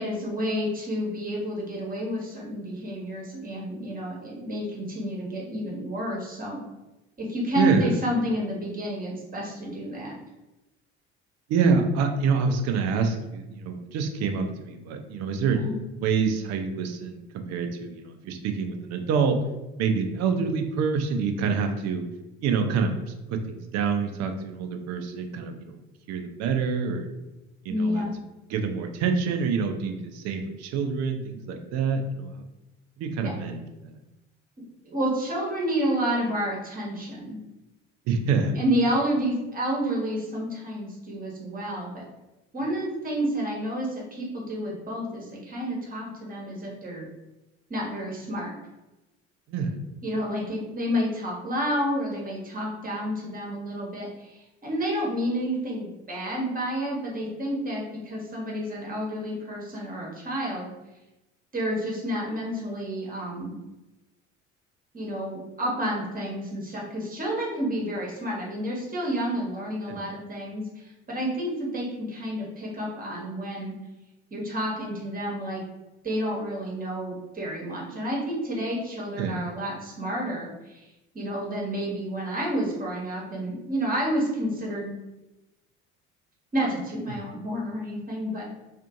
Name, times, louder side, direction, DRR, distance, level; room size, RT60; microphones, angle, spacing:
voice 1, 0.0-6.6 7.2-10.1 15.5-15.7 27.7-28.1 33.2-33.3 34.9-37.4 38.5-42.0 42.5-47.1 47.7-48.5 50.0-60.7 61.5-63.5 64.9-73.7 74.3-75.6 76.0-80.9 81.1-84.9 86.5-88.5, equal, 25° right, -2 dB, 1.1 m, -30 dB
voice 2, 7.6-8.0 11.5-15.6 16.0-19.4 19.8-22.0 22.4-23.0 23.3-25.8 26.1-27.1 27.7-28.1 28.5-32.3 33.0-33.9 38.1-38.6 49.5-49.8 69.9-70.1 79.2-79.4 87.1-87.2, right 5 dB, 50° right, 5 dB, 0.5 m, -26 dB
2.5 x 2.5 x 2.5 m, 0.99 s
figure-of-eight pair, 55°, 35 cm